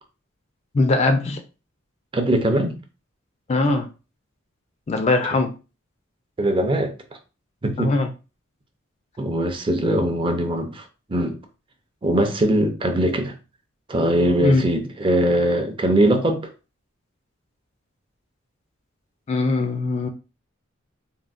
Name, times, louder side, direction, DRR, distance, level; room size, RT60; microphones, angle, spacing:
voice 1, 0.7-1.4 3.5-3.9 4.9-5.5 7.8-8.1 14.4-14.6 19.3-20.1, left 2 dB, 30° left, 0.3 m, -20 dB
voice 2, 2.1-2.7 6.4-6.9 7.6-8.0 9.2-10.8 11.1-11.4 12.0-13.3 13.9-16.4, right 1 dB, 25° right, 0.5 m, -21 dB
3.7 x 2.0 x 2.4 m
head